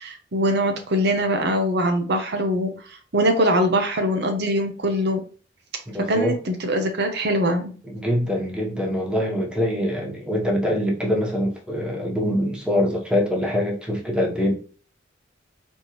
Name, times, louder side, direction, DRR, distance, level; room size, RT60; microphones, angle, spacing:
voice 1, 0.0-5.2 6.0-7.7, equal, 60° right, 0.8 m, -22 dB
voice 2, 5.9-6.3 7.8-14.6, left 1 dB, 5° right, 1.2 m, -24 dB
4.3 x 3.2 x 3.1 m
head